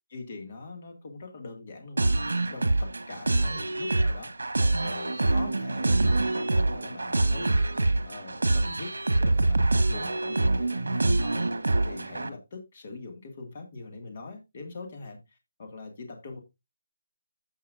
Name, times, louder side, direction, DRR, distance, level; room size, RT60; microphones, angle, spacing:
voice 1, 0.1-2.2 2.5-7.6 8.0-11.5 11.8-16.4, left 3 dB, 25° left, 5 dB, 1.8 m, -43 dB
sound 1, 2.0-12.3, right 2 dB, 85° right, 1.6 m, -25 dB
15.5 x 5.5 x 2.5 m, 0.23 s
hypercardioid pair, 180°, 0 cm